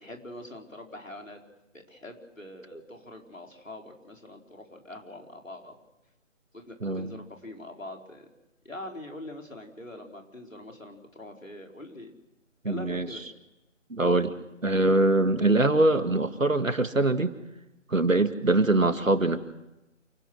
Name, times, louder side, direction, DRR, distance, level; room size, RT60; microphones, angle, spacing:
voice 1, 0.0-1.4 1.7-5.7 6.5-8.3 8.6-12.1 12.6-13.2, left 1 dB, 85° left, 2 dB, 4.6 m, -43 dB
voice 2, 6.8-7.1 12.6-13.1 13.9-14.3 14.6-17.3 17.9-19.4, right 2 dB, 85° right, 9 dB, 2.2 m, -23 dB
28.5 x 17.5 x 6.4 m, 0.96 s
figure-of-eight pair, 150°, 38 cm